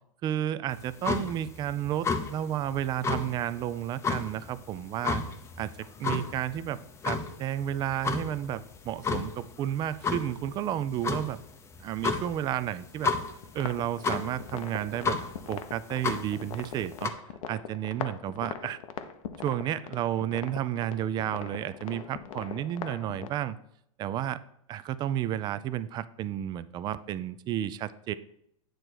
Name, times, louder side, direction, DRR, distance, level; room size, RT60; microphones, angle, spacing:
voice 1, 0.2-5.2 5.6-6.8 7.0-11.4 11.8-13.1 13.5-15.2 15.5-17.1 17.5-18.8 19.4-23.6 24.0-24.4 24.7-28.1, right 11 dB, 25° right, 15 dB, 0.3 m, -32 dB
sound 1, 0.7-17.1, left 4 dB, 15° left, 0.6 m, -34 dB
sound 2, 13.4-23.3, left 8 dB, 75° left, 0.8 m, -41 dB
9.1 x 3.3 x 6.1 m, 0.73 s
hypercardioid pair, 130°, 18 cm